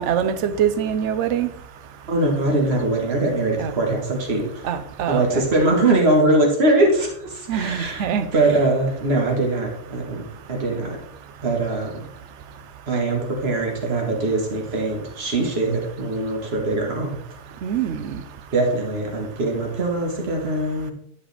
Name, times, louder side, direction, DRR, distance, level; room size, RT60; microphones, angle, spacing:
voice 1, 0.0-1.5 3.6-3.7 4.6-5.4 7.5-8.2 17.6-18.0, right 8 dB, 60° right, 11 dB, 0.8 m, -23 dB
voice 2, 2.1-4.7 5.1-8.1 8.3-11.0 11.4-12.0 12.9-17.2 18.5-20.9, right 2 dB, 40° right, 0 dB, 1.9 m, -22 dB
10.5 x 5.4 x 3.5 m, 0.68 s
omnidirectional pair, 1.8 m